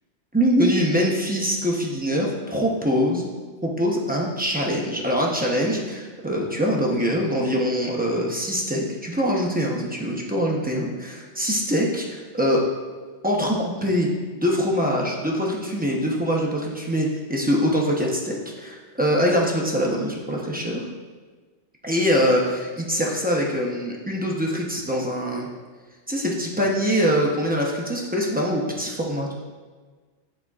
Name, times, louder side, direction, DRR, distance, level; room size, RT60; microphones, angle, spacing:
voice 1, 0.3-3.3 3.6-12.7 13.2-14.1 14.4-20.8 21.8-25.5 26.1-29.3, equal, 10° right, -3 dB, 0.8 m, -23 dB
10.5 x 4.3 x 2.4 m, 1.4 s
omnidirectional pair, 1.2 m